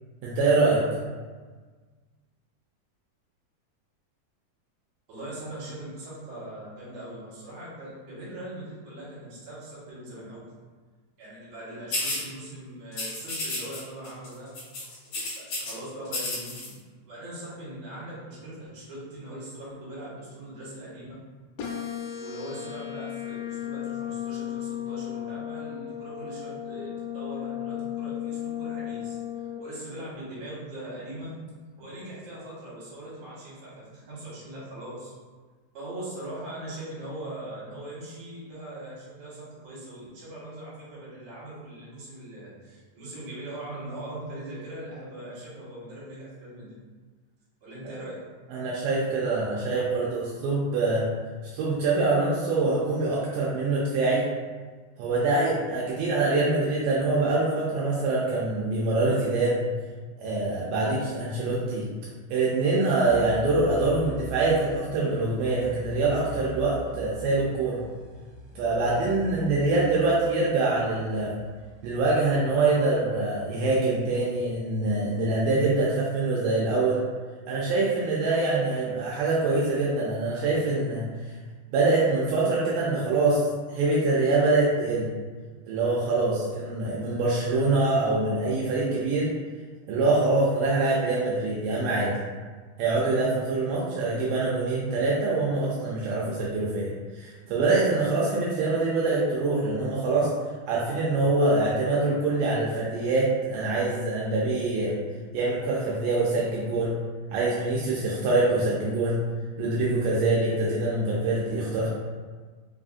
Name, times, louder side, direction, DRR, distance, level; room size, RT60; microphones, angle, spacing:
voice 1, 0.2-0.8 47.8-47.9 48.5-51.1 51.5-54.2 55.0-59.6 60.2-61.9 62.3-67.8 68.6-71.3 71.8-77.0 77.5-81.3 81.7-85.1 85.7-89.3 89.9-92.1 92.8-100.3 100.7-105.0 105.3-107.0 107.3-109.2 109.6-111.9, right 2 dB, 80° right, -5 dB, 2.1 m, -24 dB
voice 2, 5.1-10.4 11.2-14.5 15.3-16.7 17.1-21.1 22.1-31.4 31.8-35.1 35.7-46.7 47.6-48.3, right 1 dB, 60° right, -8 dB, 2.5 m, -40 dB
sound 1, 11.9-12.2 12.9-13.8 14.0-14.3 14.5-15.7 16.1-16.7, left 2 dB, 65° left, 2.3 m, -31 dB
sound 2, 21.6-29.6, left 11 dB, 85° left, 2.4 m, -35 dB
sound 3, 63.1-73.6, right 3 dB, 45° right, 0.9 m, -44 dB
5.4 x 2.5 x 2.5 m, 1.4 s
omnidirectional pair, 4.0 m